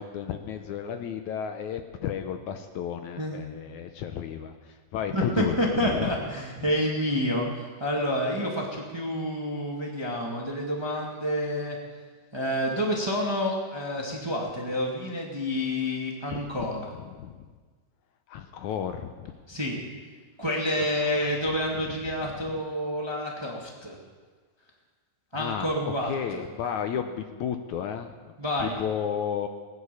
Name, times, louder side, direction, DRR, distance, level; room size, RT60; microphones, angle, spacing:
voice 1, 0.0-6.2 6.6-6.7 16.3-16.7 17.0-17.4 18.3-19.3 20.8-20.9 21.7-21.9 22.2-22.3 25.3-28.1 28.6-29.5, left 8 dB, 75° left, 7 dB, 2.0 m, -33 dB
voice 2, 5.1-11.8 12.3-16.8 19.5-19.8 20.4-24.0 25.3-26.4 28.4-28.8, equal, 10° right, -1 dB, 1.4 m, -28 dB
19.5 x 9.8 x 7.0 m, 1.4 s
omnidirectional pair, 3.8 m